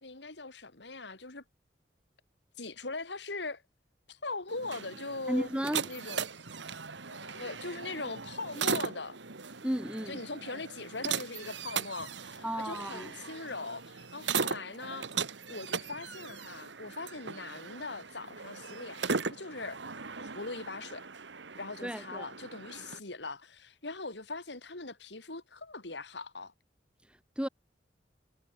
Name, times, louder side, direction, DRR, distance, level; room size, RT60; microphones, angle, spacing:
voice 1, 0.0-1.4 2.6-3.6 4.1-5.5 5.8-6.2 7.1-9.2 10.1-15.1 15.5-19.8 20.2-21.1 21.6-26.5, left 3 dB, 70° left, 3.0 m, -41 dB
sound 1, 4.5-23.0, right 5 dB, 80° right, 1.8 m, -38 dB
voice 2, 5.3-5.8 9.6-10.2 12.4-13.1 21.8-22.3 27.4-27.5, equal, 5° right, 1.1 m, -33 dB
head